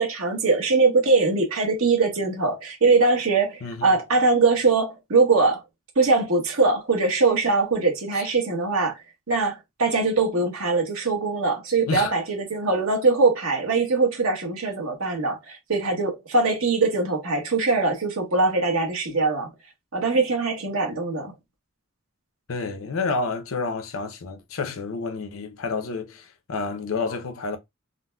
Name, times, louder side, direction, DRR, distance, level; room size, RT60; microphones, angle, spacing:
voice 1, 0.0-5.6 6.0-19.5 19.9-21.3, right 3 dB, 80° right, 1.0 m, -22 dB
voice 2, 3.6-4.0 8.1-8.3 11.9-12.1 22.5-27.6, left 4 dB, 75° left, 0.6 m, -29 dB
3.8 x 2.0 x 2.2 m
head